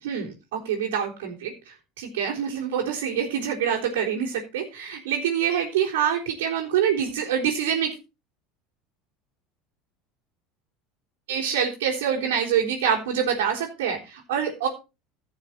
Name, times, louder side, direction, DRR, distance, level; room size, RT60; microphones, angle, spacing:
voice 1, 0.0-1.5 2.0-7.9 11.3-14.7, right 8 dB, 80° right, -4 dB, 3.8 m, -26 dB
16.0 x 6.9 x 4.5 m, 0.29 s
hypercardioid pair, 80°, 0 cm